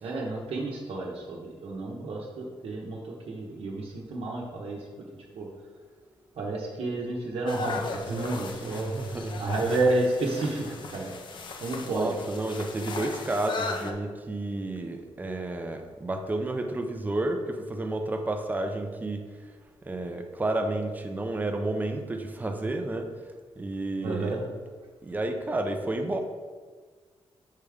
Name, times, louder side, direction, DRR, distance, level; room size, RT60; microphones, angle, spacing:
voice 1, 0.0-4.8 5.3-5.5 6.4-8.9 9.4-11.1 11.6-12.1 24.0-24.4, right 2 dB, 65° right, -3 dB, 1.0 m, -30 dB
sound 1, 7.5-13.9, left 4 dB, 50° left, 0.5 m, -37 dB
voice 2, 8.6-9.4 11.9-19.2 19.9-23.1 23.6-24.4 25.0-26.2, right 2 dB, 15° right, 5 dB, 0.5 m, -31 dB
6.6 x 3.5 x 4.9 m, 1.5 s
wide cardioid pair, 175°, 10 cm